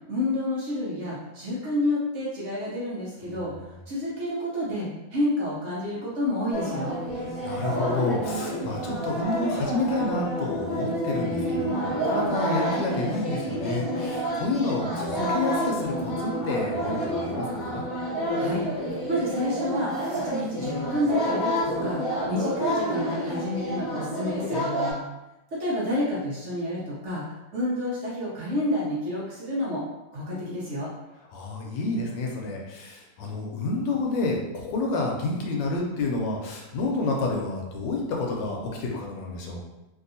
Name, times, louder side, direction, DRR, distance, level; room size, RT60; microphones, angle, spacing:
voice 1, 0.1-3.5 3.9-7.0 18.4-18.6 19.1-24.6 25.5-27.2 27.5-29.8 30.1-30.9, left 1 dB, 55° right, -7 dB, 0.8 m, -29 dB
voice 2, 3.2-3.6 7.2-17.8 24.5-25.1 31.3-39.7, left 2 dB, 75° left, -1 dB, 1.2 m, -29 dB
sound 1, 6.5-24.9, equal, 30° left, 0.9 m, -29 dB
3.2 x 2.7 x 2.6 m, 0.98 s
omnidirectional pair, 2.1 m